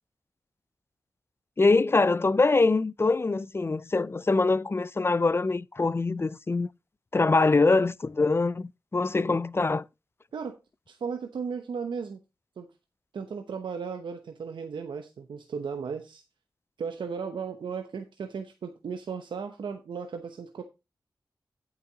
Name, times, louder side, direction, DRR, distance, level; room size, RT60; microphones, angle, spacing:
voice 1, 1.6-6.7 7.1-9.9, left 3 dB, 30° left, 0.4 m, -24 dB
voice 2, 10.9-12.2 12.6-12.7 13.1-16.2 16.8-20.6, right 6 dB, 90° right, 0.9 m, -35 dB
8.6 x 8.0 x 3.9 m
cardioid pair, 50°, 8 cm